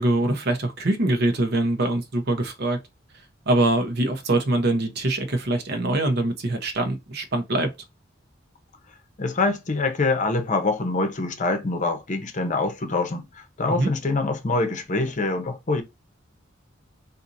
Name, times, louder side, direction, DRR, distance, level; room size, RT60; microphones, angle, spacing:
voice 1, 0.0-2.8 3.5-7.7 13.7-13.9, right 2 dB, 55° right, 0.9 m, -23 dB
voice 2, 9.2-15.8, left 3 dB, 40° left, 0.8 m, -25 dB
4.2 x 2.7 x 2.6 m
head